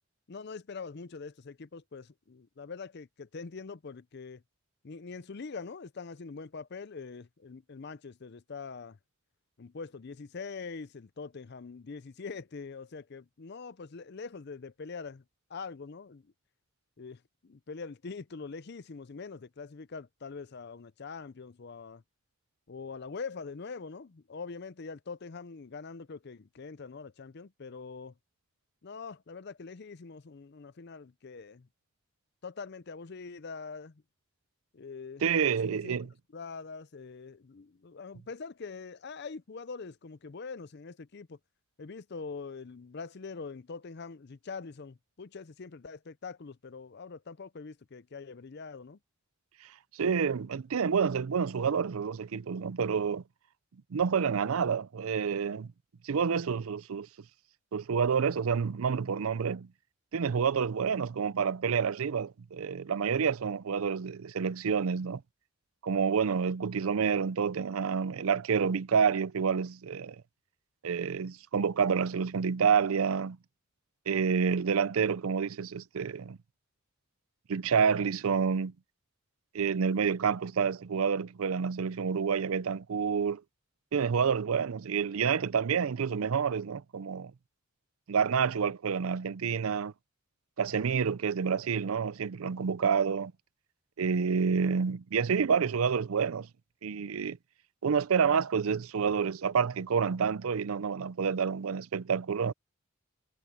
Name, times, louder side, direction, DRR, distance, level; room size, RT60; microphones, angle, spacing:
voice 1, 0.3-4.4 4.8-9.0 9.6-15.2 15.5-16.3 17.0-22.0 22.7-28.1 28.8-31.7 32.4-34.0 34.7-35.2 35.6-36.1 36.3-41.4 41.8-49.0, left 4 dB, 50° left, 0.5 m, -43 dB
voice 2, 35.2-36.1 50.0-53.2 53.9-55.7 56.0-57.1 57.7-59.7 60.1-65.2 65.8-70.2 70.8-73.4 74.1-76.4 77.5-78.7 79.5-83.4 83.9-87.3 88.1-89.9 90.6-93.3 94.0-96.5 96.8-97.4 97.8-102.5, right 6 dB, 85° right, 0.5 m, -28 dB
head